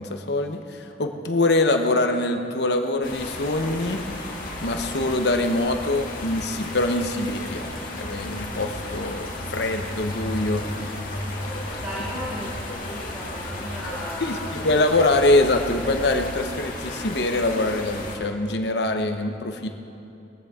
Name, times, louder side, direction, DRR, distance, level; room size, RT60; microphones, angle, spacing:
voice 1, 0.0-4.0 4.6-7.7 8.0-10.7 14.2-19.7, left 2 dB, 65° left, 5 dB, 1.0 m, -24 dB
sound 1, 3.0-18.2, left 1 dB, 45° left, 2.2 m, -34 dB
voice 2, 11.8-14.9, equal, 15° right, -9 dB, 2.6 m, -36 dB
21.0 x 15.0 x 3.7 m, 2.8 s
head